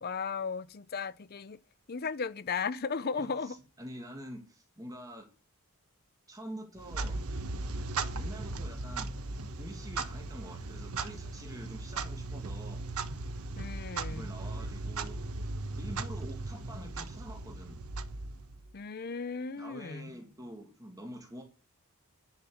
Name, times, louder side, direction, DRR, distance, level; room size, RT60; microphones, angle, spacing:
voice 1, 0.0-1.6 1.9-3.6 13.6-14.3 18.7-20.1, left 5 dB, 45° left, 0.6 m, -36 dB
voice 2, 3.2-5.3 6.3-7.2 8.2-12.8 14.1-15.2 15.8-17.8 19.6-21.4, equal, 15° right, 2.1 m, -46 dB
Clock, 6.8-18.7, right 3 dB, 75° right, 1.2 m, -37 dB
10.5 x 6.0 x 6.9 m
head